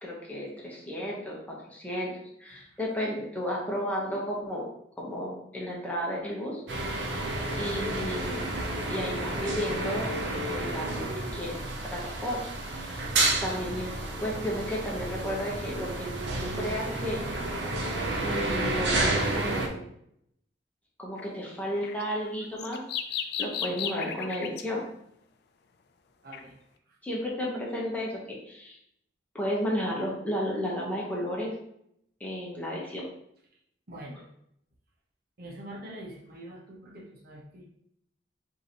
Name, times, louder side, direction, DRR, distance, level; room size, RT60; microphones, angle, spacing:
voice 1, 0.0-4.7 5.0-6.6 7.6-8.5 8.9-10.2 10.5-12.4 12.7-13.0 13.4-13.9 14.2-16.1 16.4-17.2 18.2-19.9 21.0-22.8 23.4-24.9 27.0-28.8 29.3-31.5 32.2-33.1, equal, 10° left, -4 dB, 1.0 m, -33 dB
voice 2, 2.5-2.8 26.2-26.6 26.9-27.0 33.9-34.2 35.4-37.6, right 1 dB, 60° right, -2 dB, 1.0 m, -44 dB
sound 1, 6.7-19.7, right 2 dB, 80° right, 0.8 m, -31 dB
sound 2, 21.2-21.3 21.8-24.6 26.3-26.4, left 8 dB, 60° left, 0.4 m, -34 dB
5.5 x 2.8 x 3.0 m, 0.73 s
head